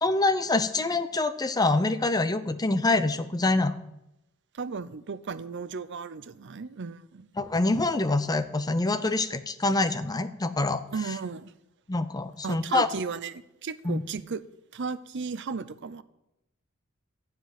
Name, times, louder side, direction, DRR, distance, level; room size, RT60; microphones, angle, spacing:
voice 1, 0.0-3.8 7.4-10.8 11.9-12.9 13.8-14.0, left 2 dB, 20° left, 11 dB, 0.7 m, -25 dB
voice 2, 4.5-7.3 10.9-11.5 12.4-14.4 14.7-16.0, right 5 dB, 60° right, 14 dB, 0.6 m, -35 dB
14.5 x 5.1 x 9.1 m, 0.88 s
head